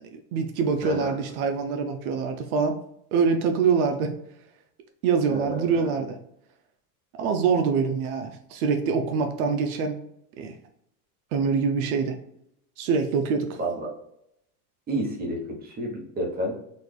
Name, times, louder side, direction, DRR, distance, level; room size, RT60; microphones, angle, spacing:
voice 1, 0.0-2.8 3.1-4.1 5.0-6.2 7.2-10.0 10.4-10.5 11.3-12.2 12.8-13.6, right 5 dB, 70° right, 5 dB, 0.7 m, -25 dB
voice 2, 0.8-1.2 5.3-5.7 13.6-13.9 14.9-16.5, right 1 dB, 20° right, -1 dB, 1.0 m, -30 dB
4.0 x 2.4 x 3.2 m, 0.75 s
supercardioid pair, 145°, 45 cm